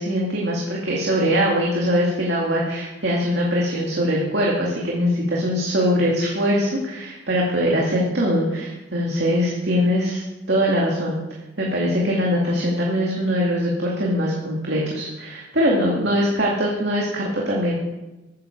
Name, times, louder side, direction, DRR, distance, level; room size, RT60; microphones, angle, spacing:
voice 1, 0.0-11.2 11.6-17.7, equal, 60° right, -3 dB, 2.3 m, -22 dB
14.0 x 10.0 x 4.6 m, 1.0 s
head